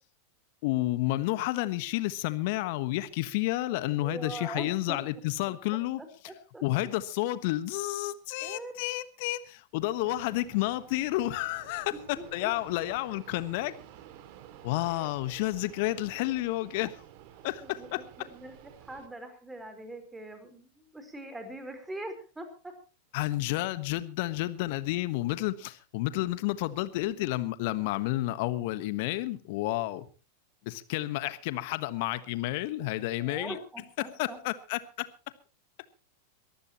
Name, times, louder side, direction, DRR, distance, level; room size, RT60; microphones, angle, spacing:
voice 1, 0.6-6.0 6.6-13.7 14.6-17.0 17.4-18.0 23.1-30.1 30.6-33.6 34.0-35.1, left 17 dB, 55° left, 14 dB, 1.3 m, -31 dB
voice 2, 4.0-5.0 6.0-6.6 8.4-8.7 10.1-10.2 12.2-12.3 14.9-15.1 17.6-22.8 33.2-34.4, right 1 dB, 10° right, 8 dB, 4.4 m, -42 dB
Fixed-wing aircraft airplane, 10.0-19.1, right 10 dB, 50° right, 2.4 m, -52 dB
23.0 x 15.0 x 3.0 m, 0.34 s
figure-of-eight pair, 90°, 0 cm